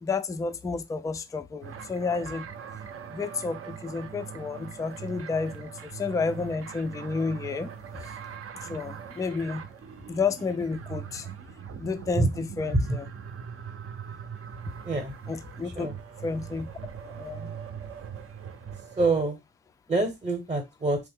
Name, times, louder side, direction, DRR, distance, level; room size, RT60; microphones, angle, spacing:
voice 1, 0.0-2.5 3.1-7.7 8.0-8.1 8.6-9.6 10.1-11.3 11.8-13.1 15.3-15.9 16.2-16.7 17.0-17.5, left 4 dB, 10° left, 0.3 m, -31 dB
sound 1, 1.6-19.2, right 7 dB, 45° right, 0.6 m, -41 dB
voice 2, 14.8-15.2 15.6-16.0 19.0-19.4 19.9-21.0, right 2 dB, 20° right, 0.8 m, -26 dB
3.1 x 2.1 x 3.5 m
cardioid pair, 90°, 30 cm